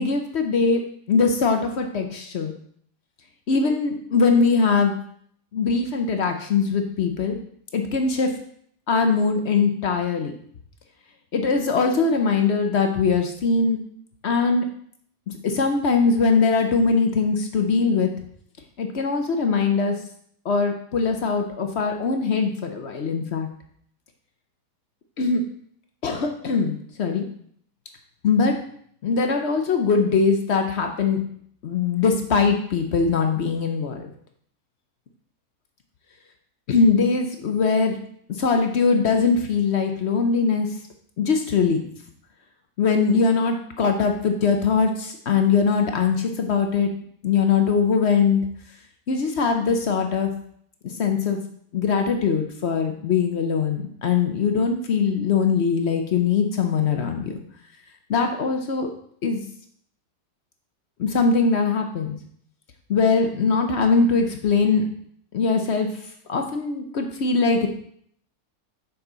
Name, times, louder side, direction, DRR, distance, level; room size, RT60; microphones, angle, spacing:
voice 1, 0.0-2.5 3.5-4.9 5.5-7.4 7.7-8.3 8.9-10.3 11.3-13.8 14.2-14.6 15.3-18.1 18.8-20.0 20.4-23.5 25.2-25.4 26.0-27.3 28.2-28.6 29.0-31.2 31.6-34.1 36.7-38.0 38.4-40.7 41.2-41.8 42.8-46.9 47.2-48.4 49.1-50.3 50.8-51.4 51.7-57.4 58.1-58.9 59.2-59.4 61.0-62.2 62.9-64.9 65.3-65.9 66.3-67.7, left 5 dB, 55° left, 4 dB, 0.8 m, -21 dB
6.9 x 5.5 x 3.8 m, 0.64 s
omnidirectional pair, 1.7 m